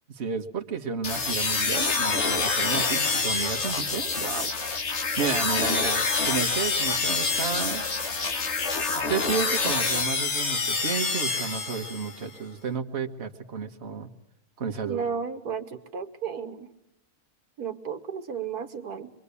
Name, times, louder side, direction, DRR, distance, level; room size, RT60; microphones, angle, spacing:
voice 1, 0.1-4.5 5.2-7.8 8.9-14.1 14.6-15.1, right 5 dB, 45° right, 5 dB, 1.7 m, -32 dB
sound 1, 1.0-12.2, left 4 dB, 50° left, 1.8 m, -27 dB
voice 2, 14.8-16.7 17.6-19.1, right 6 dB, 75° right, 7 dB, 1.7 m, -33 dB
24.5 x 23.5 x 8.3 m, 0.79 s
omnidirectional pair, 1.6 m